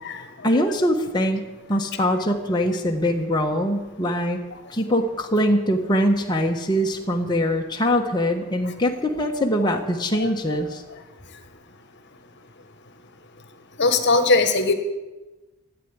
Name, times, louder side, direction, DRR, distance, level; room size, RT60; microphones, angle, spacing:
voice 1, 0.4-4.4 4.7-10.8, equal, 20° left, 1 dB, 1.2 m, -23 dB
voice 2, 10.2-10.6 13.8-14.7, left 3 dB, 50° left, 8 dB, 1.4 m, -20 dB
14.0 x 9.0 x 9.7 m, 1.1 s
head